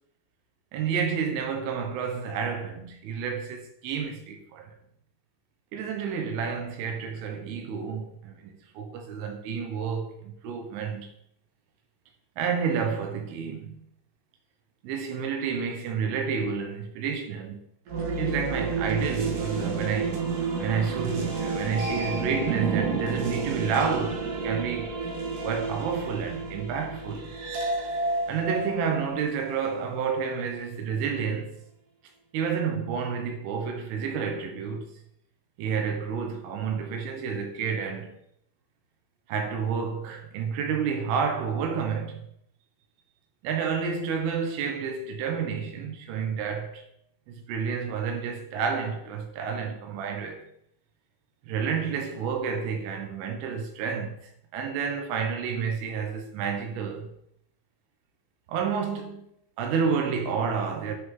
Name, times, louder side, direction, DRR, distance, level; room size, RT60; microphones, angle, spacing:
voice 1, 0.7-4.8 5.7-11.1 12.4-13.8 14.8-17.6 18.2-20.3 20.6-24.9 25.4-27.4 28.3-31.6 32.3-34.9 35.6-38.2 39.3-42.2 43.4-46.8 47.3-50.5 51.5-57.1 58.5-59.3 59.6-61.0, right 6 dB, 85° right, 3.5 m, -30 dB
sound 1, 17.9-29.7, right 4 dB, 60° right, 2.3 m, -30 dB
9.2 x 4.9 x 3.7 m
omnidirectional pair, 5.5 m